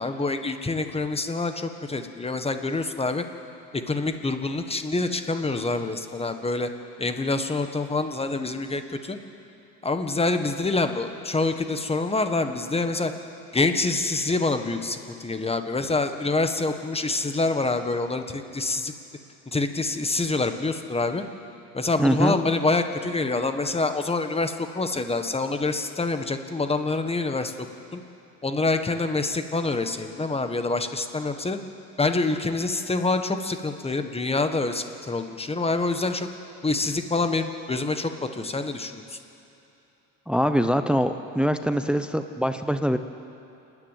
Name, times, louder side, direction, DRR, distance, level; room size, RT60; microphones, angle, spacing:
voice 1, 0.0-3.2 3.7-6.7 7.0-9.2 9.8-13.1 13.5-18.9 19.5-21.2 21.7-27.5 27.9-28.0 28.4-31.6 32.0-36.3 36.6-39.2, left 3 dB, 15° left, 7 dB, 1.5 m, -26 dB
voice 2, 22.0-22.4 40.3-43.0, equal, 5° right, 9 dB, 0.8 m, -23 dB
29.0 x 9.9 x 9.2 m, 2.9 s
supercardioid pair, 95°, 37 cm